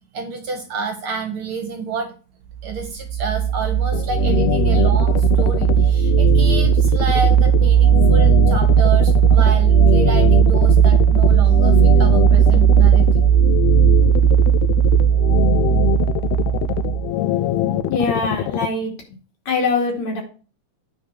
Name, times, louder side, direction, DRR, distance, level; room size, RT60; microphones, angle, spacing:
voice 1, 0.1-2.1 2.6-13.0, right 5 dB, 55° right, 5 dB, 1.7 m, -29 dB
sound 1, 2.6-17.1, right 9 dB, 80° right, 2.0 m, -15 dB
sound 2, 3.9-18.7, left 12 dB, 85° left, 1.5 m, -23 dB
voice 2, 17.3-19.0 19.5-20.2, left 3 dB, 60° left, 1 dB, 3.6 m, -23 dB
9.2 x 4.5 x 6.4 m, 0.36 s
omnidirectional pair, 3.6 m